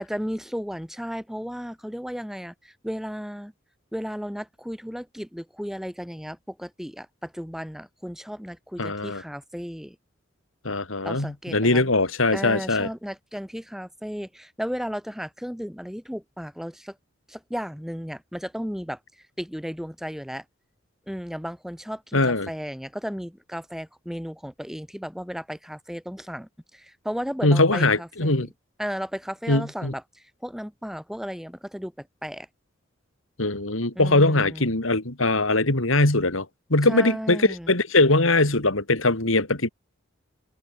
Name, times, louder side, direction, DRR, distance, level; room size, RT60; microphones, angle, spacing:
voice 1, 0.0-3.5 3.9-10.0 11.0-11.9 12.3-17.0 17.3-19.0 19.4-20.4 21.1-28.5 28.8-32.5 33.9-34.7 36.9-37.8, equal, ahead, 2.5 m, -34 dB
voice 2, 8.8-9.2 10.6-12.9 22.1-22.5 27.4-28.5 29.5-29.9 33.4-39.7, left 2 dB, 90° left, 3.5 m, -21 dB
head